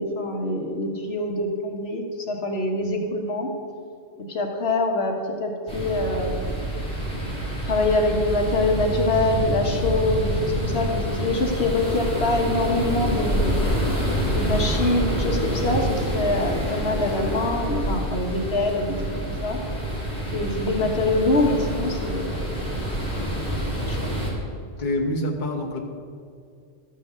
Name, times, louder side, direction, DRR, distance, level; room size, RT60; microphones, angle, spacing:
voice 1, 0.0-3.5 4.3-6.6 7.6-13.6 14.3-19.0 19.2-19.6 20.3-22.7 23.1-23.2 23.8-24.1, left 2 dB, 65° left, 2 dB, 1.4 m, -25 dB
sound 1, 5.7-24.3, right 1 dB, 5° left, 3.0 m, -27 dB
voice 2, 24.8-25.8, left 1 dB, 45° left, 0 dB, 1.1 m, -26 dB
13.0 x 5.5 x 6.7 m, 2.3 s
omnidirectional pair, 1.1 m